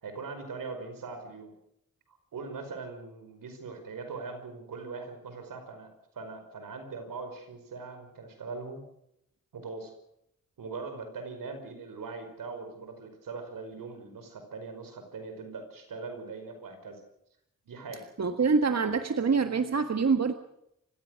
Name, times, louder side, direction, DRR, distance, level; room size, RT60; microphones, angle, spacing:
voice 1, 0.0-1.5 2.1-5.9 6.1-8.8 9.5-9.9 10.6-17.0 17.7-18.1, right 4 dB, 85° right, 7 dB, 5.2 m, -41 dB
voice 2, 18.2-20.3, right 5 dB, 50° right, 8 dB, 1.6 m, -25 dB
28.0 x 16.0 x 6.5 m, 0.78 s
cardioid pair, 50°, 33 cm